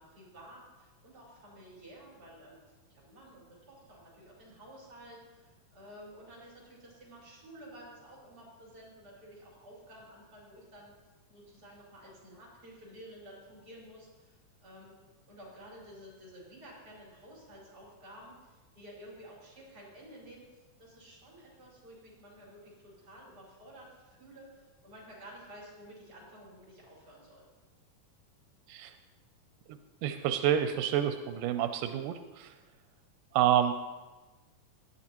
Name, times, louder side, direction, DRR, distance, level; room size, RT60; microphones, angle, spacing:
voice 1, 0.0-2.6 2.9-11.0 11.3-15.0 15.3-27.5, equal, 30° right, -5 dB, 5.8 m, -52 dB
voice 2, 30.0-32.5 33.3-33.7, right 10 dB, 85° right, 8 dB, 2.2 m, -28 dB
18.0 x 12.5 x 3.0 m, 1.2 s
omnidirectional pair, 3.7 m